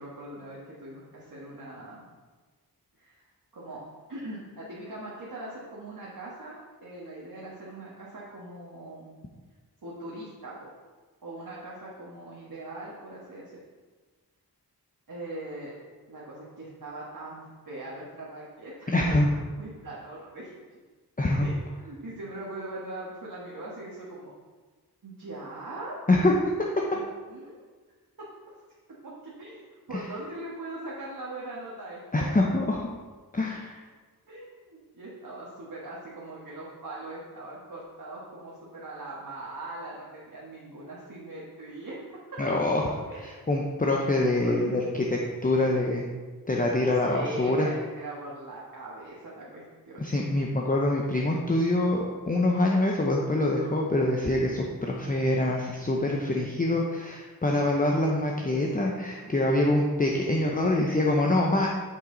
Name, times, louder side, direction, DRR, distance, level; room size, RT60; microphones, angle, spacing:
voice 1, 0.0-2.1 3.0-3.2 3.5-9.1 9.8-10.7 11.2-13.5 15.1-15.7 16.1-20.8 21.4-24.3 25.0-26.0 26.9-27.0 27.3-27.6 28.2-28.3 29.0-32.4 34.3-42.0 43.1-43.2 44.2-44.9 46.8-50.1 58.4-59.3, right 1 dB, 60° right, -6 dB, 1.5 m, -41 dB
voice 2, 18.9-19.3 21.2-21.5 26.1-26.3 32.1-32.9 33.3-33.8 42.4-44.8 45.4-46.0 46.5-47.7 50.0-61.7, left 2 dB, 20° left, -1 dB, 0.7 m, -25 dB
7.9 x 6.0 x 3.9 m, 1.4 s
wide cardioid pair, 95°, 39 cm